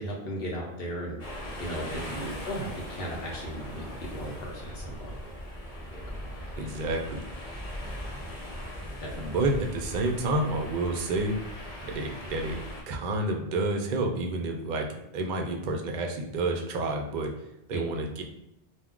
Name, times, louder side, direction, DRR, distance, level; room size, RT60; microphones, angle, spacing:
voice 1, 0.0-2.0 2.4-5.1 6.1-6.2 9.0-9.1 17.7-17.8, equal, 60° left, -3 dB, 1.1 m, -36 dB
sound 1, 1.2-12.8, equal, 40° left, 0.7 m, -39 dB
voice 2, 2.0-2.4 6.6-7.2 9.2-11.3 11.8-12.6 12.9-18.2, right 2 dB, 55° right, 2 dB, 0.5 m, -30 dB
2.6 x 2.3 x 3.5 m, 0.87 s
omnidirectional pair, 1.1 m